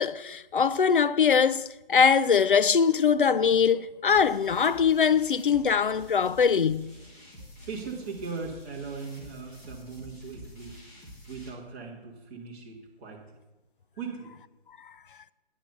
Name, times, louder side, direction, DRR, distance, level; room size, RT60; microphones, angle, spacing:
voice 1, 0.0-6.9 14.8-14.9, left 6 dB, 55° left, 0.4 m, -22 dB
sound 1, 4.1-11.5, equal, 15° left, 1.9 m, -48 dB
voice 2, 7.7-10.8 11.3-13.2 14.0-14.3, right 4 dB, 15° right, 1.5 m, -39 dB
9.6 x 6.0 x 6.9 m
figure-of-eight pair, 155°, 31 cm